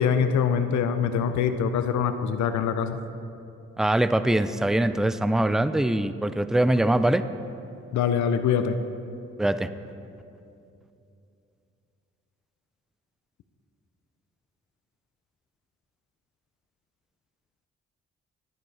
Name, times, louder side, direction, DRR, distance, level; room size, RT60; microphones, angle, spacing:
voice 1, 0.0-3.0 7.9-8.8, left 7 dB, 75° left, 9 dB, 0.5 m, -24 dB
voice 2, 3.8-7.2 9.4-9.7, right 1 dB, ahead, 13 dB, 0.3 m, -23 dB
11.0 x 10.0 x 3.3 m, 2.7 s
supercardioid pair, 50°, 29 cm